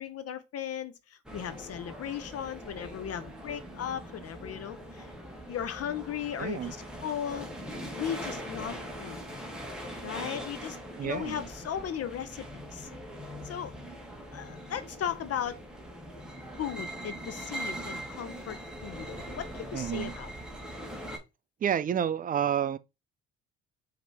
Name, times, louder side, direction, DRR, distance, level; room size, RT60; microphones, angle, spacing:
voice 1, 0.0-5.1 5.5-6.8 7.0-7.5 7.9-9.2 10.0-12.9 13.4-13.7 14.3-15.6 16.6-20.3, left 9 dB, 45° left, 0.6 m, -37 dB
sound 1, 1.3-21.2, equal, ahead, 1.4 m, -41 dB
voice 2, 6.4-6.7 11.0-11.5 19.7-20.1 21.6-22.8, right 9 dB, 25° right, 0.4 m, -29 dB
4.9 x 2.9 x 3.3 m
hypercardioid pair, 60°, 35 cm